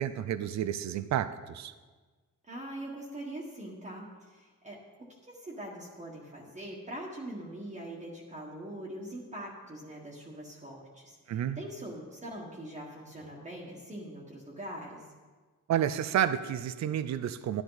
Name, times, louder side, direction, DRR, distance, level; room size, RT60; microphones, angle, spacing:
voice 1, 0.0-1.7 11.3-11.6 15.7-17.6, right 10 dB, 60° right, 13 dB, 0.6 m, -30 dB
voice 2, 2.4-4.8 5.1-15.1, right 1 dB, 20° right, -4 dB, 1.6 m, -43 dB
13.0 x 10.5 x 4.0 m, 1.4 s
cardioid pair, 140°, 32 cm